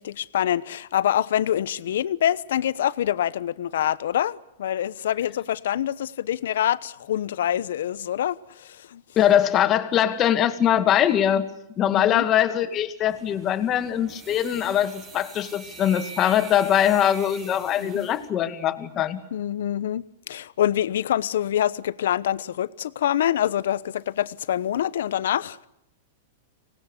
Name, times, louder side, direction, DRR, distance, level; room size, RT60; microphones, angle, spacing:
voice 1, 0.0-9.0 11.9-12.2 17.8-18.1 19.3-25.7, left 11 dB, 75° left, 1.0 m, -26 dB
voice 2, 9.2-11.5 11.8-19.2, left 10 dB, 30° left, 2.1 m, -22 dB
sound 1, 13.1-18.3, right 4 dB, 25° right, 3.2 m, -43 dB
25.0 x 19.0 x 8.3 m
hypercardioid pair, 135°, 0 cm